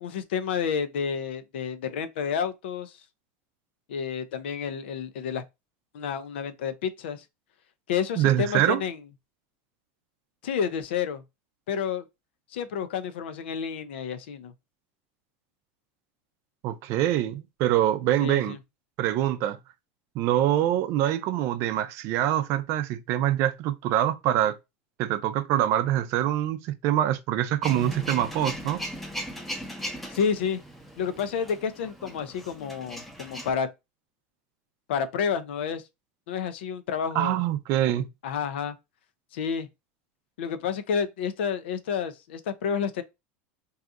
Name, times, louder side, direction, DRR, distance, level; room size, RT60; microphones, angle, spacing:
voice 1, 0.0-3.0 3.9-5.4 5.9-7.2 7.9-9.0 10.4-11.2 11.7-12.0 12.5-14.5 18.2-18.6 30.1-30.6 31.0-33.7 34.9-35.8 36.3-37.4 38.2-38.8 39.3-39.7 40.4-43.0, left 7 dB, 90° left, 0.5 m, -30 dB
voice 2, 8.2-8.8 16.6-18.6 19.0-19.6 20.2-24.6 25.0-28.8 37.1-38.1, right 12 dB, 50° right, 0.4 m, -25 dB
Male speech man speaking / Vehicle / Engine starting, 27.6-33.5, equal, ahead, 0.6 m, -38 dB
2.7 x 2.4 x 3.6 m
supercardioid pair, 135°, 6 cm